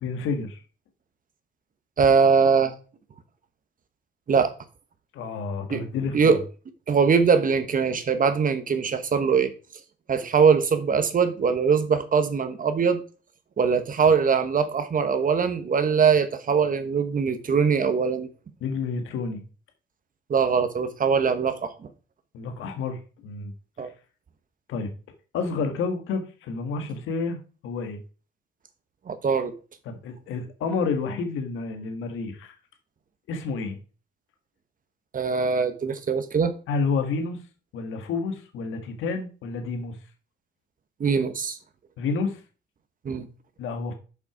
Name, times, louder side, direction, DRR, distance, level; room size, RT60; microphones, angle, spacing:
voice 1, 0.0-0.6 5.1-6.3 18.6-19.4 22.3-23.5 23.8-23.9 24.7-24.9 25.3-27.4 27.6-28.0 29.8-32.5 33.3-33.8 36.7-37.4 37.7-39.9 42.0-42.4 43.6-43.9, left 4 dB, 85° left, 1.5 m, -29 dB
voice 2, 2.0-2.7 4.3-4.5 5.7-5.8 6.1-6.4 6.9-9.5 10.1-13.0 13.6-18.3 20.3-21.9 23.8-23.9 29.1-29.5 35.1-36.5 41.0-41.6 43.0-43.3, right 6 dB, 45° right, 1.1 m, -22 dB
6.8 x 5.6 x 4.9 m
cardioid pair, 90°, 20 cm